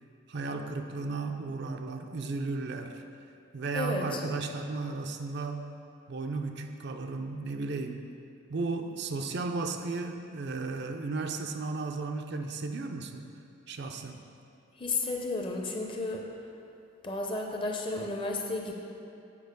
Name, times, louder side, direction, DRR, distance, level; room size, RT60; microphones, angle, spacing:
voice 1, 0.3-3.0 3.5-5.7 6.1-8.1 8.5-13.3 13.7-14.2, right 3 dB, 55° right, 5 dB, 0.5 m, -34 dB
voice 2, 3.7-4.2 14.8-16.2 17.0-18.8, left 2 dB, 25° left, 1 dB, 0.7 m, -32 dB
8.4 x 4.9 x 5.2 m, 2.6 s
head